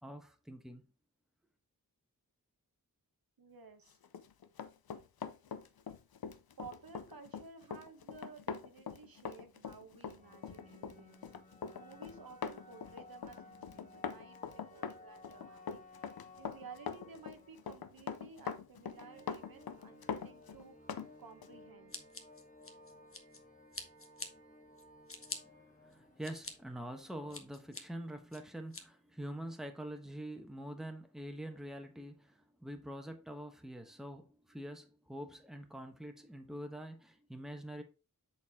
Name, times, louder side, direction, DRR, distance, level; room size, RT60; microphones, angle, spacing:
voice 1, 0.0-0.8 25.4-37.8, right 1 dB, ahead, 1.2 m, -45 dB
voice 2, 3.4-4.0 6.6-11.2 11.8-15.6 16.4-21.9, right 5 dB, 75° right, 1.1 m, -55 dB
Run, 4.0-21.1 21.4-21.6, left 7 dB, 80° left, 0.7 m, -43 dB
sound 1, 9.9-27.4, left 2 dB, 20° left, 1.5 m, -59 dB
Scissors, 21.9-23.4 23.7-24.3 24.8-25.4 25.9-26.5 27.0-27.8 28.3-28.8, left 3 dB, 35° left, 1.2 m, -45 dB
7.3 x 4.2 x 3.6 m
wide cardioid pair, 55°, 36 cm